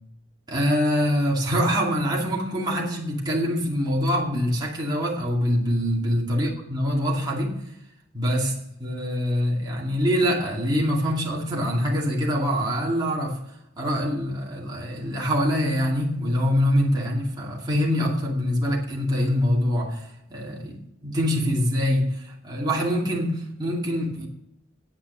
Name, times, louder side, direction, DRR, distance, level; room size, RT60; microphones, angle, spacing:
voice 1, 0.5-7.6 8.1-13.4 13.8-24.3, equal, 20° right, 2.4 m, -24 dB
9.9 x 8.8 x 6.3 m
head